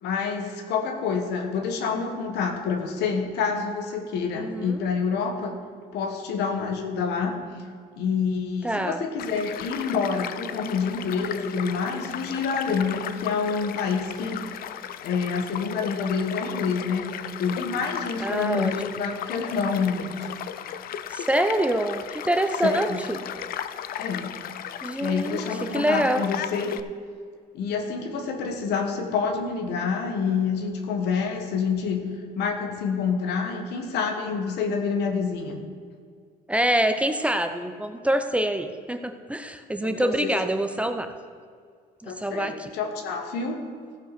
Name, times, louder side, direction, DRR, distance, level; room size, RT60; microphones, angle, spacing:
voice 1, 0.0-5.6 5.9-7.4 8.0-14.4 15.0-17.1 17.4-20.3 22.6-23.0 24.0-24.3 25.0-26.7 27.5-32.1 32.3-35.6 39.8-40.3 42.0-43.6, left 5 dB, 80° left, 5 dB, 1.5 m, -27 dB
voice 2, 4.3-4.8 8.6-9.0 18.2-19.0 21.1-23.2 24.8-25.5 25.7-26.3 36.5-41.1 42.0-42.7, right 1 dB, 5° right, 7 dB, 0.6 m, -25 dB
Child speech kid speaking / Stream / Car passing by, 9.2-26.8, left 10 dB, 60° left, 0.6 m, -36 dB
15.5 x 5.6 x 5.9 m, 2.1 s
cardioid pair, 110°, 17 cm